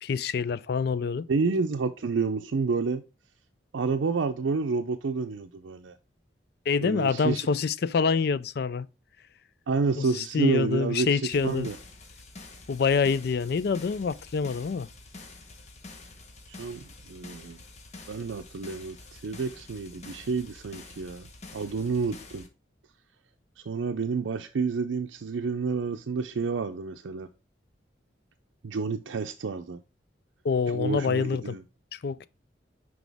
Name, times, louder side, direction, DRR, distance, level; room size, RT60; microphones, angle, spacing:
voice 1, 0.0-1.3 6.7-8.9 10.0-11.7 12.7-14.9 30.4-31.6 31.9-32.3, left 5 dB, 55° left, 0.4 m, -26 dB
voice 2, 1.3-3.0 3.7-5.9 6.8-7.5 9.7-11.8 16.5-17.6 18.1-21.3 21.5-22.5 23.7-27.3 28.6-29.8 30.7-31.6, right 4 dB, 85° right, 0.5 m, -29 dB
sound 1, 11.3-22.5, left 3 dB, 35° left, 1.1 m, -47 dB
6.1 x 4.8 x 3.4 m
head